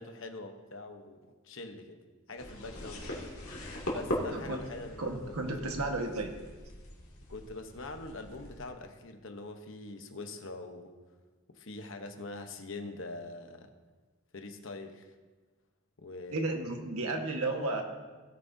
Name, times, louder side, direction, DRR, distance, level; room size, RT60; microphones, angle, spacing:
voice 1, 0.0-2.0 2.3-3.3 3.9-5.7 7.3-10.9 11.5-13.7 14.3-15.1 16.0-16.6, left 2 dB, 60° left, 6 dB, 1.0 m, -44 dB
sound 1, 2.4-8.7, left 1 dB, 85° left, 2.4 m, -40 dB
voice 2, 5.0-6.3 16.3-17.8, right 2 dB, 90° right, 2 dB, 1.5 m, -33 dB
17.5 x 9.4 x 2.8 m, 1.3 s
head